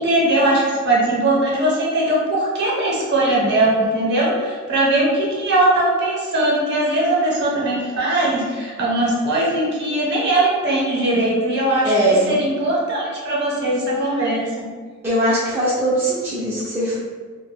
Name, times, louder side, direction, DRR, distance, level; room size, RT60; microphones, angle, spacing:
voice 1, 0.0-11.9 12.3-14.7, right 1 dB, 50° right, -4 dB, 0.7 m, -20 dB
voice 2, 11.8-12.4 15.0-17.0, right 1 dB, 10° right, -9 dB, 0.4 m, -20 dB
2.2 x 2.1 x 3.2 m, 1.5 s
head